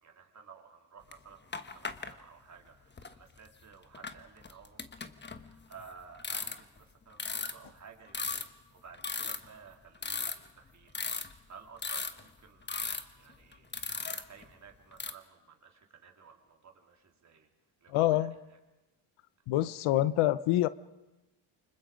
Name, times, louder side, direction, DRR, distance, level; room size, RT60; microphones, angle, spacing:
voice 1, 0.0-12.7 13.1-13.7 14.1-17.5 17.8-18.6, right 6 dB, 35° right, 2 dB, 3.4 m, -55 dB
sound 1, 1.1-1.2 1.5-2.1 3.0-3.1 3.9-5.8 6.1-6.8 7.2-7.5 8.1-8.4 8.9-9.5 9.9-10.7 10.9-11.4 11.8-12.2 12.7-13.0 13.5-14.4 14.9-15.1, left 4 dB, 20° left, 1.2 m, -36 dB
voice 2, 17.9-18.3 19.5-20.7, left 15 dB, 90° left, 16 dB, 0.8 m, -26 dB
28.5 x 25.5 x 5.1 m, 1.0 s
cardioid pair, 125°, 48 cm